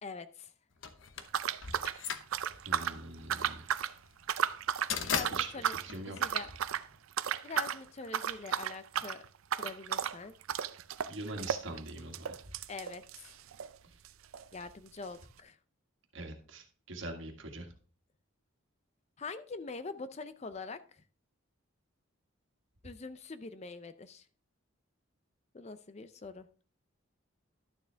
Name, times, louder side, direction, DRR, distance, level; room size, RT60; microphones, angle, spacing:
voice 1, 0.0-0.5 5.1-5.7 6.2-6.5 7.4-9.2 9.5-10.3 12.7-13.3 14.5-15.6 19.2-21.0 22.8-24.2 25.5-26.5, left 4 dB, 30° left, 12 dB, 0.5 m, -44 dB
sound 1, 0.8-7.0, left 6 dB, 70° left, 0.9 m, -38 dB
sound 2, 1.3-3.0 3.3-3.9 4.2-4.9 5.2-5.9 6.2-6.9 7.2-7.8 8.1-13.8 14.0-14.1 14.3-14.4 15.1-15.2, right 8 dB, 85° right, 0.5 m, -34 dB
voice 2, 2.7-3.7 5.3-6.2 11.1-12.4 16.1-17.7, right 2 dB, 65° right, 4 dB, 1.7 m, -43 dB
11.5 x 7.0 x 3.4 m, 0.41 s
head